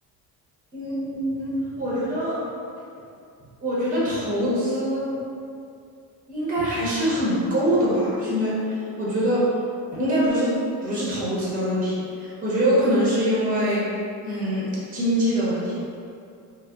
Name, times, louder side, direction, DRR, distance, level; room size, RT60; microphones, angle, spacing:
voice 1, 0.7-2.5 3.6-5.1 6.3-9.5 9.9-10.5 10.8-13.9 14.2-15.8, equal, 20° right, -8 dB, 0.7 m, -24 dB
3.4 x 2.2 x 2.3 m, 2.4 s
cardioid pair, 135°, 39 cm